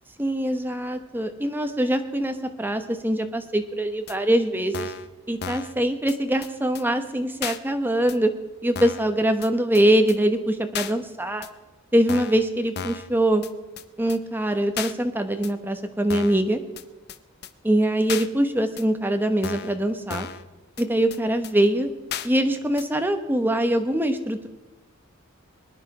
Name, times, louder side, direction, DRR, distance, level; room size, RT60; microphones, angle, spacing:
voice 1, 0.2-4.9 5.3-8.3 8.6-11.5 11.9-13.4 14.0-16.6 17.6-20.3 20.8-21.9 22.2-24.5, right 1 dB, 10° right, 6 dB, 1.0 m, -23 dB
sound 1, 4.1-4.2 4.7-5.1 5.4-5.7 6.1-6.2 6.4-6.5 6.8-6.9 7.4-7.6 8.1-8.2 8.8-9.1 9.4-9.5 9.8-9.9 10.1-10.2 10.7-10.9 11.4-11.5 12.1-12.4 12.8-13.1 13.4-13.5 13.8-13.9 14.1-14.2 14.8-14.9 15.4-15.5 16.1-16.4 16.8-16.9 17.1-17.2 17.4-17.5 18.1-18.3 18.8-18.9 19.4-19.8 20.1-20.4 20.8-20.9 21.1-21.2 21.4-21.5 22.1-22.3 22.8-22.9, left 7 dB, 50° left, 0.6 m, -33 dB
23.0 x 10.0 x 4.9 m, 1.1 s
head